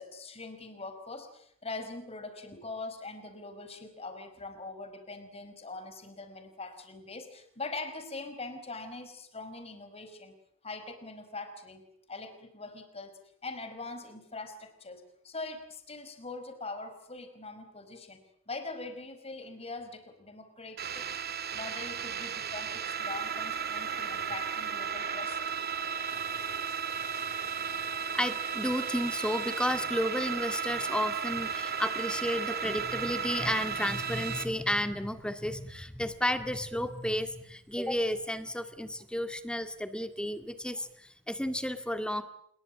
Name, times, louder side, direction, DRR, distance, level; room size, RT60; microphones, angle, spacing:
voice 1, 0.0-10.3 10.6-11.8 12.1-18.2 18.5-21.2 21.5-25.4, left 3 dB, 30° left, 8 dB, 5.1 m, -42 dB
sound 1, 20.8-34.5, right 7 dB, 50° right, 2.8 m, -34 dB
voice 2, 28.1-42.2, left 1 dB, 5° left, 9 dB, 2.0 m, -32 dB
27.5 x 22.5 x 7.5 m, 0.68 s
head